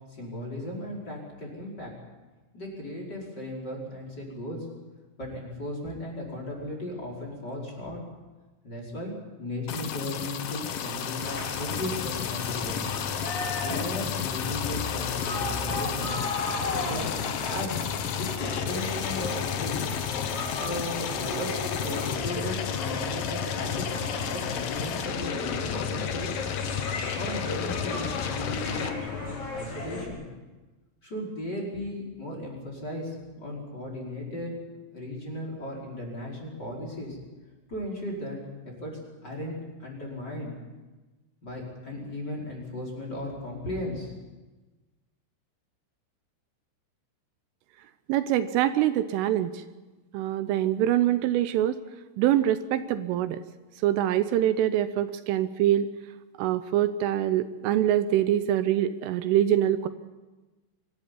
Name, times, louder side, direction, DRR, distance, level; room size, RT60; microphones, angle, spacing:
voice 1, 0.1-1.9 2.5-4.7 5.2-8.0 8.6-9.1 9.4-12.9 13.6-16.2 16.7-17.8 18.2-19.9 20.6-24.0 24.3-26.3 27.1-30.2 31.0-34.5 34.9-37.2 37.7-38.4 38.6-40.5 41.4-44.1, left 1 dB, 20° left, 0 dB, 5.3 m, -36 dB
sound 1, 9.7-28.9, left 8 dB, 75° left, 2.0 m, -32 dB
sound 2, 11.2-30.1, left 3 dB, 45° left, 5.8 m, -35 dB
voice 2, 48.1-49.5 50.1-51.8 52.2-53.4 53.8-55.9 56.4-59.9, right 12 dB, 80° right, 11 dB, 3.3 m, -24 dB
25.0 x 14.0 x 9.8 m, 1.2 s
omnidirectional pair, 5.8 m